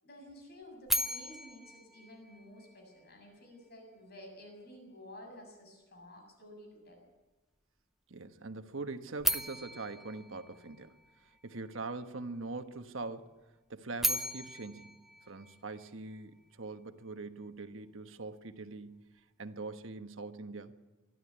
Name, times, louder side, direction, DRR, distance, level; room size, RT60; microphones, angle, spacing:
voice 1, 0.0-7.1, left 1 dB, 55° left, 3 dB, 7.5 m, -52 dB
sound 1, 0.9-3.0 9.2-11.4 13.7-16.1, equal, ahead, 0.7 m, -36 dB
voice 2, 8.1-11.0 11.2-13.3 13.7-14.9 15.2-19.0 19.4-20.7, right 3 dB, 80° right, 8 dB, 1.3 m, -42 dB
23.0 x 12.5 x 9.8 m, 1.2 s
head